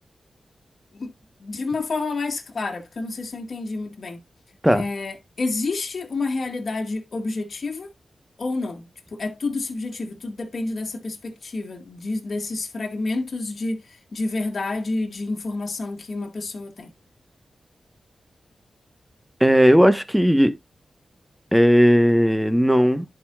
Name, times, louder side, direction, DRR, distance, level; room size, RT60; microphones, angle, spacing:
voice 1, 1.4-4.2 4.7-7.9 8.4-16.9, left 3 dB, 55° left, 2.0 m, -29 dB
voice 2, 19.4-20.5 21.5-23.0, equal, 5° right, 1.2 m, -16 dB
11.0 x 5.2 x 2.4 m
wide cardioid pair, 80°, 0 cm